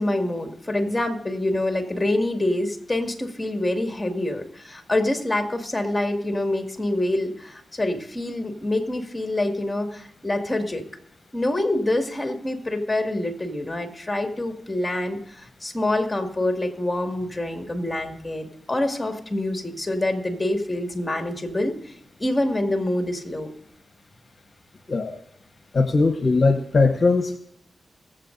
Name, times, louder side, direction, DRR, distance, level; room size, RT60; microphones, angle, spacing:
voice 1, 0.0-10.8 11.3-21.9 22.2-23.5, left 1 dB, 20° left, 4 dB, 2.1 m, -26 dB
voice 2, 24.9-25.2 25.7-27.4, left 3 dB, 55° left, 6 dB, 1.0 m, -20 dB
22.0 x 7.5 x 2.6 m, 0.76 s
cardioid pair, 50°, 0 cm